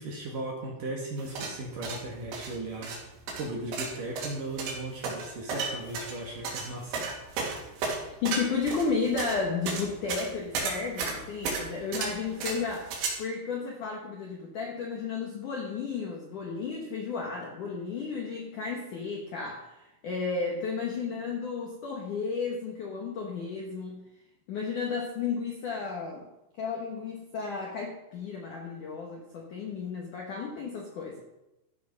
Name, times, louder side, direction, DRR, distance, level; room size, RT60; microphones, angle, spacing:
voice 1, 0.0-2.9 3.3-7.1, right 2 dB, 55° right, -1 dB, 2.7 m, -37 dB
sound 1, 1.2-13.1, right 4 dB, 85° right, 5.3 m, -34 dB
voice 2, 8.2-24.0 24.5-26.3 26.6-31.2, left 5 dB, 65° left, -1 dB, 2.0 m, -33 dB
14.5 x 9.2 x 5.4 m, 0.96 s
omnidirectional pair, 5.7 m